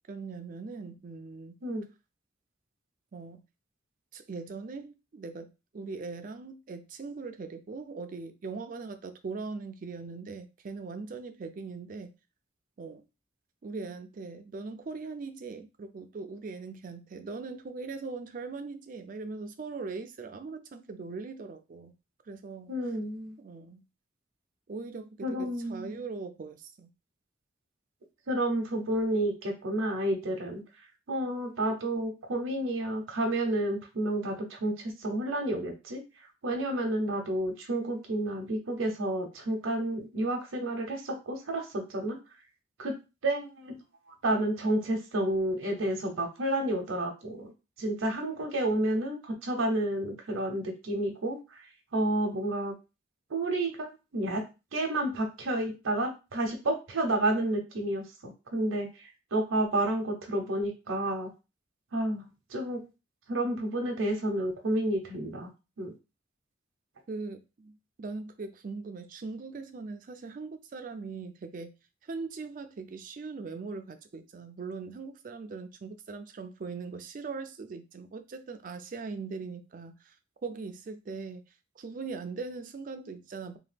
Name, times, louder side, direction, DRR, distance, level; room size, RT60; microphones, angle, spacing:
voice 1, 0.1-1.6 3.1-3.4 4.1-12.1 12.8-13.0 13.6-21.9 22.3-22.7 23.4-23.8 24.7-26.9 67.1-71.7 72.0-80.1 80.4-81.4 81.8-83.6, right 4 dB, 45° right, 0.3 m, -40 dB
voice 2, 22.7-23.3 25.2-26.0 28.3-30.6 31.1-36.0 36.4-42.2 42.8-43.0 43.2-43.8 44.2-47.5 47.8-51.6 51.9-52.7 53.3-54.4 54.7-58.0 58.5-61.3 61.9-62.8 63.3-65.5 65.8-65.9, right 1 dB, 90° right, 0.7 m, -30 dB
2.8 x 2.3 x 3.3 m
head